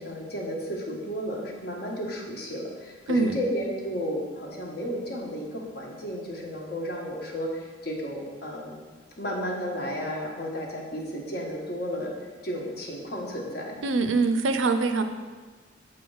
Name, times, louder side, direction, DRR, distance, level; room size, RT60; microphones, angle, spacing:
voice 1, 0.0-8.8 9.2-12.1 12.4-13.8, equal, 55° left, 0 dB, 1.1 m, -33 dB
voice 2, 13.8-15.0, right 3 dB, 75° right, 8 dB, 0.5 m, -23 dB
7.5 x 3.5 x 4.7 m, 1.4 s
head